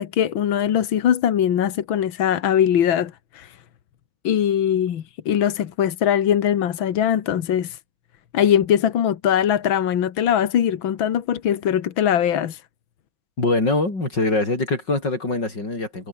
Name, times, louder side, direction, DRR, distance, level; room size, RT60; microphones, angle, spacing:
voice 1, 0.0-3.5 4.2-7.8 8.3-12.6, left 9 dB, 55° left, 1.4 m, -21 dB
voice 2, 13.4-16.1, left 2 dB, 30° left, 7.3 m, -23 dB
omnidirectional pair, 3.8 m